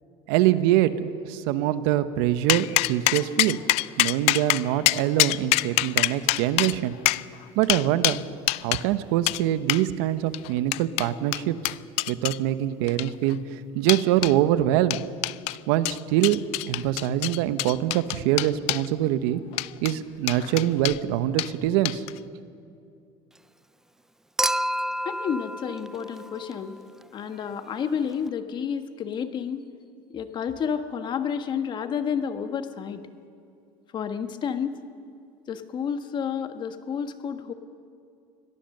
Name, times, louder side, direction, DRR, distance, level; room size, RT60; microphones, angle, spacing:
voice 1, 0.3-3.6 4.0-6.9 7.5-8.2 8.6-11.7 12.1-15.0 15.7-16.4 16.7-19.4 19.8-22.0, right 13 dB, 80° right, 12 dB, 1.0 m, -24 dB
sound 1, 2.5-8.8 9.3-9.4 9.7-9.8 10.3-12.4 12.9-13.3 13.9-14.3 14.9-15.6 15.9-18.9 19.5-19.9 20.3-21.0 21.4-21.5 21.9-22.2, left 20 dB, 65° left, 0.4 m, -25 dB
Human group actions / Chink clink / Liquid, 24.4-26.8 28.3-28.4, right 1 dB, 5° right, 0.4 m, -29 dB
voice 2, 25.0-26.8 27.1-29.7 30.1-33.0 33.9-34.8 35.5-37.5, left 7 dB, 40° left, 9 dB, 1.4 m, -30 dB
24.0 x 17.5 x 6.7 m, 2.5 s
supercardioid pair, 110°, 12 cm